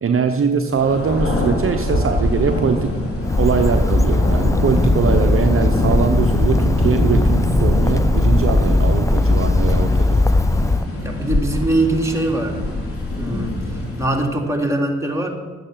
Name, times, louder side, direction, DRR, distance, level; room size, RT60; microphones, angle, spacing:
voice 1, 0.0-2.9 3.4-10.4, right 6 dB, 45° right, 5 dB, 1.0 m, -22 dB
Thunder, 0.7-14.4, left 1 dB, 50° left, 4.0 m, -24 dB
Bird, 3.2-10.8, left 2 dB, 10° left, 0.6 m, -18 dB
voice 2, 11.0-12.6 13.2-15.3, right 1 dB, 10° right, 0 dB, 3.4 m, -22 dB
12.5 x 8.9 x 7.5 m, 1.3 s
hypercardioid pair, 45°, 29 cm